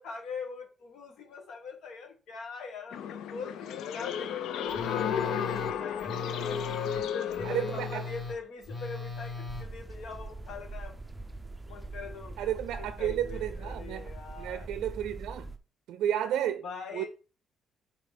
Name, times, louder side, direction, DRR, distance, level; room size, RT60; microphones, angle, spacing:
voice 1, 0.0-6.6 6.9-11.0 11.7-14.7 16.6-17.1, left 4 dB, 65° left, 1.8 m, -43 dB
sound 1, 2.9-8.2, left 8 dB, 80° left, 0.5 m, -33 dB
Telephone, 4.7-9.7, left 3 dB, 20° left, 1.2 m, -39 dB
voice 2, 7.4-8.0 12.4-14.1 14.4-15.5 15.9-16.6 16.9-17.1, right 10 dB, 90° right, 0.4 m, -32 dB
sound 2, 9.5-15.6, right 2 dB, 5° right, 0.6 m, -42 dB
5.2 x 4.1 x 5.1 m
cardioid pair, 155°, 0 cm